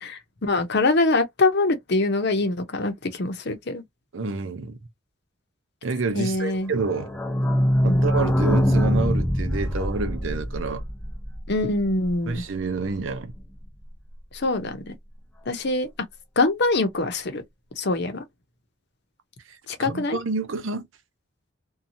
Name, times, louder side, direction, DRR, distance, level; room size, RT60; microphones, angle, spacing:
voice 1, 0.0-3.8 6.2-6.7 7.8-8.0 11.5-12.4 14.3-14.9 15.5-15.9 16.4-17.4 17.8-18.2 19.7-20.2, left 2 dB, 60° left, 0.8 m, -24 dB
voice 2, 4.1-4.8 5.8-7.2 7.8-10.8 12.3-13.3 19.5-20.9, right 4 dB, 75° right, 0.6 m, -28 dB
sound 1, 6.8-12.3 12.7-12.8 12.9-13.0 13.3-13.4, equal, 5° left, 0.4 m, -23 dB
2.8 x 2.3 x 2.6 m
head